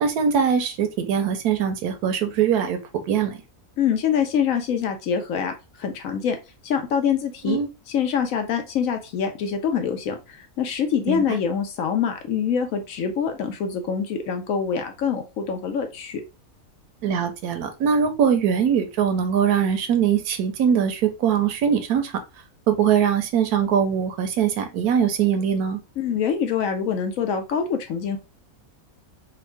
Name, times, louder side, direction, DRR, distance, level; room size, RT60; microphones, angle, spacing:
voice 1, 0.0-2.8 3.1-3.4 7.4-7.7 11.1-11.2 17.0-22.2 22.7-25.8, right 7 dB, 85° right, 8 dB, 1.2 m, -22 dB
voice 2, 3.8-5.5 5.8-6.4 6.6-7.6 7.9-16.2 26.0-28.2, left 7 dB, 70° left, 6 dB, 1.0 m, -25 dB
3.6 x 2.2 x 3.3 m, 0.27 s
omnidirectional pair, 1.6 m